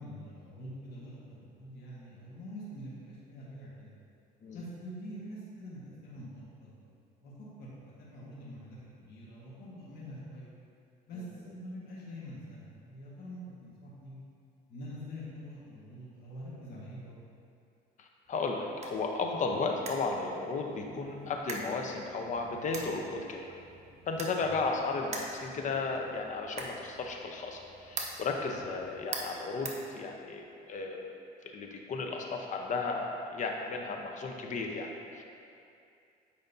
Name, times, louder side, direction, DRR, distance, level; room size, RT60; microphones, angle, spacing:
voice 1, 0.0-3.9 4.5-6.9 7.2-7.3 7.6-10.5 11.1-14.2 14.7-17.2 24.4-24.5 28.6-28.7, equal, 70° left, -7 dB, 1.6 m, -45 dB
voice 2, 18.0-23.4 24.1-31.1 31.5-35.2, left 3 dB, 45° left, 2 dB, 0.8 m, -34 dB
sound 1, 18.3-30.5, right 3 dB, 40° right, 0.9 m, -45 dB
8.8 x 5.1 x 2.7 m, 2.5 s
cardioid pair, 110°, 17 cm